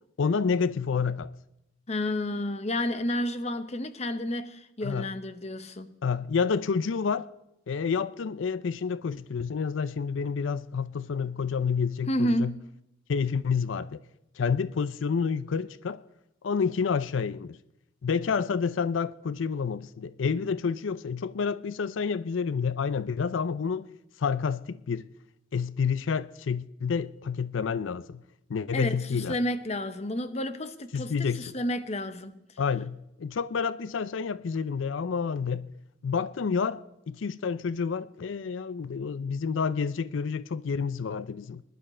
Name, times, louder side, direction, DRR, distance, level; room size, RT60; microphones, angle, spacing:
voice 1, 0.2-1.3 4.8-5.1 6.0-7.3 7.7-12.5 13.1-14.0 14.4-16.0 16.4-17.6 18.0-23.9 24.2-25.1 25.5-28.2 28.5-29.4 30.9-31.5 32.6-35.7 36.0-41.6, left 5 dB, 90° left, 0.5 m, -29 dB
voice 2, 1.9-5.9 12.1-12.6 28.7-32.4, left 1 dB, 35° left, 0.9 m, -30 dB
20.0 x 11.5 x 4.3 m
head